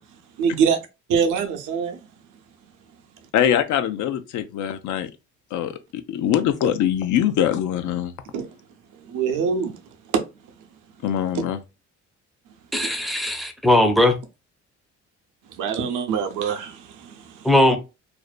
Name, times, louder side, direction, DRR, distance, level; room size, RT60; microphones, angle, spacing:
voice 1, 0.4-0.8 1.1-2.0 8.3-8.5 9.1-9.8 10.1-10.2 15.5-17.5, right 6 dB, 85° right, 0.6 m, -24 dB
voice 2, 3.3-5.1 5.5-8.1 11.0-11.6, left 10 dB, 75° left, 0.5 m, -23 dB
voice 3, 12.7-14.2 17.4-17.8, left 1 dB, ahead, 0.4 m, -18 dB
2.5 x 2.1 x 2.3 m
cardioid pair, 90°, 30 cm